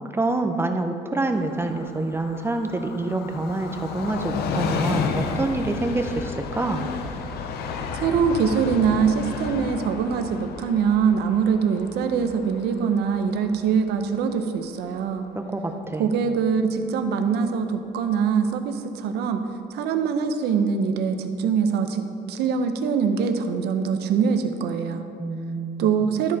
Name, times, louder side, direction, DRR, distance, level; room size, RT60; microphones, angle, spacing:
voice 1, 0.1-6.9 15.3-16.3 25.2-25.9, right 2 dB, 15° right, 5 dB, 0.6 m, -27 dB
Train, 1.3-14.7 15.0-15.1, left 5 dB, 70° left, 0.7 m, -32 dB
voice 2, 7.9-15.3 16.0-19.4 19.7-25.0 25.8-26.4, right 6 dB, 75° right, 7 dB, 0.7 m, -23 dB
12.5 x 4.3 x 4.8 m, 2.7 s
cardioid pair, 110°, 17 cm